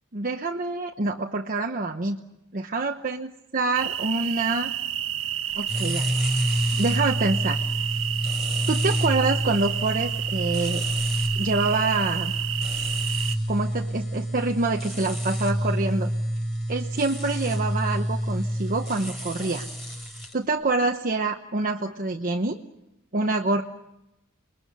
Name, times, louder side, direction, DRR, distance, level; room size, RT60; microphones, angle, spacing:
voice 1, 0.1-2.2 2.5-3.3 3.5-4.7 5.6-6.1 6.7-7.6 8.7-10.8 11.3-12.3 13.5-16.1 16.7-19.7 20.3-22.6 23.1-23.6, right 3 dB, 40° right, 2 dB, 1.1 m, -26 dB
sound 1, 3.7-13.4, right 11 dB, 65° right, 1.1 m, -30 dB
sound 2, 5.6-20.3, equal, ahead, 5.6 m, -28 dB
29.0 x 21.5 x 6.8 m, 0.88 s
head